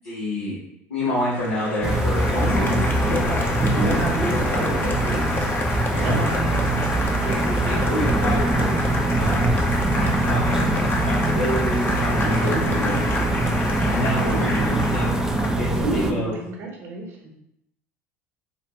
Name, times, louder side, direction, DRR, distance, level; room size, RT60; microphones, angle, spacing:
voice 1, 0.0-0.6 0.9-3.4 3.6-5.2 5.9-6.4 7.2-8.8 9.2-9.5 9.9-15.1 15.6-16.3, left 1 dB, 85° left, -9 dB, 1.0 m, -29 dB
Applause, 1.1-15.9, left 2 dB, 30° left, 0.8 m, -29 dB
sound 1, 1.8-16.1, right 2 dB, 5° right, 0.5 m, -23 dB
voice 2, 6.0-6.8 12.5-13.2 14.3-14.9 15.8-17.3, right 2 dB, 50° right, -1 dB, 1.1 m, -31 dB
4.4 x 2.4 x 3.0 m, 0.81 s
hypercardioid pair, 70°, 7 cm